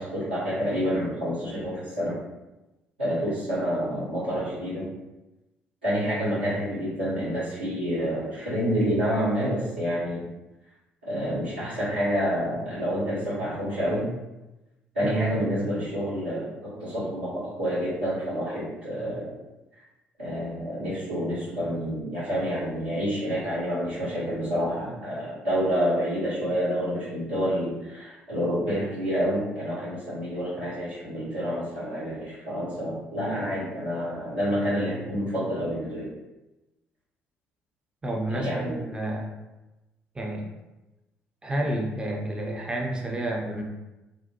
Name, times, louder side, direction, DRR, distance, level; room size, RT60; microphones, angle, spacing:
voice 1, 0.0-2.2 3.0-4.9 5.8-10.2 11.0-14.1 14.9-16.4 16.8-19.3 20.2-36.1 38.3-38.8, equal, 90° right, -13 dB, 1.2 m, -28 dB
voice 2, 38.0-39.3 40.1-40.5 41.4-43.6, right 1 dB, 15° right, 0 dB, 0.6 m, -30 dB
2.5 x 2.1 x 2.8 m, 1.0 s
figure-of-eight pair, 50°, 6 cm